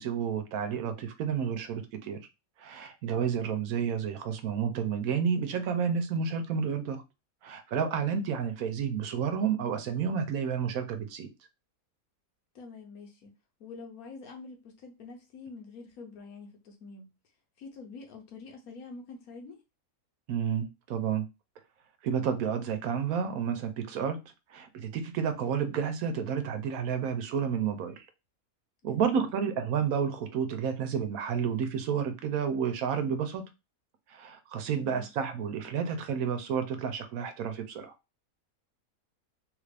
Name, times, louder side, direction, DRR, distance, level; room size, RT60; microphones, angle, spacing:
voice 1, 0.0-2.2 2.6-7.0 7.4-11.3 20.3-21.3 22.0-24.2 24.5-28.1 28.8-33.4 34.1-37.9, right 7 dB, 75° right, 1.1 m, -30 dB
voice 2, 12.5-13.3 13.6-17.1 17.6-19.6 28.9-29.2 34.9-35.1, left 4 dB, 85° left, 1.4 m, -46 dB
3.4 x 2.5 x 3.3 m
omnidirectional pair, 1.5 m